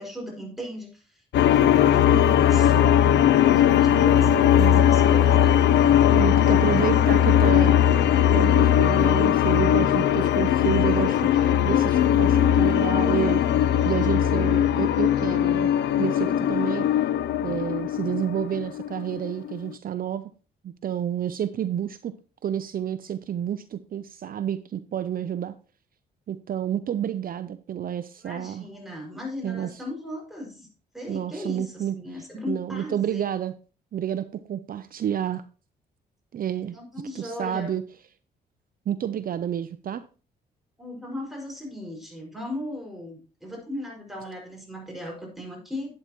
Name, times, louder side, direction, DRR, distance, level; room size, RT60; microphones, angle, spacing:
voice 1, 0.0-5.6 6.3-7.3 28.2-30.7 30.9-33.3 36.7-37.8 40.8-45.9, left 1 dB, ahead, -1 dB, 5.4 m, -37 dB
sound 1, 1.3-19.7, left 10 dB, 75° left, 0.5 m, -19 dB
voice 2, 5.8-7.7 8.1-13.4 13.8-15.7 16.0-17.1 17.4-20.3 20.6-22.2 22.4-25.6 26.3-28.7 29.4-29.7 31.1-31.9 32.5-33.5 33.9-35.4 36.3-36.8 37.2-37.8 38.9-40.0, right 9 dB, 50° right, 13 dB, 0.6 m, -29 dB
11.5 x 8.8 x 3.0 m, 0.36 s
cardioid pair, 85°, 18 cm